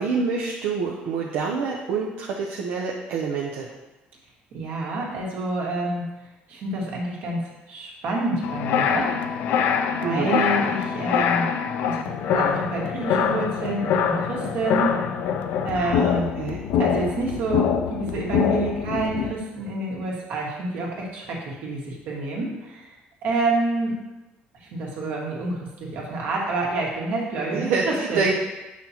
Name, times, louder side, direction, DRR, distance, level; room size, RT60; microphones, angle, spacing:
voice 1, 0.0-3.7 10.0-10.4 15.8-16.6 27.5-28.3, right 5 dB, 85° right, -2 dB, 0.7 m, -27 dB
voice 2, 4.5-6.1 6.5-7.4 7.7-9.2 10.0-11.5 11.8-14.9 15.6-16.3 16.8-22.9 23.2-24.0 24.6-28.3, right 2 dB, 65° right, -3 dB, 1.8 m, -28 dB
sound 1, 8.4-19.3, left 7 dB, 65° left, 0.5 m, -24 dB
7.1 x 5.9 x 3.0 m, 1.0 s
cardioid pair, 150°, 3 cm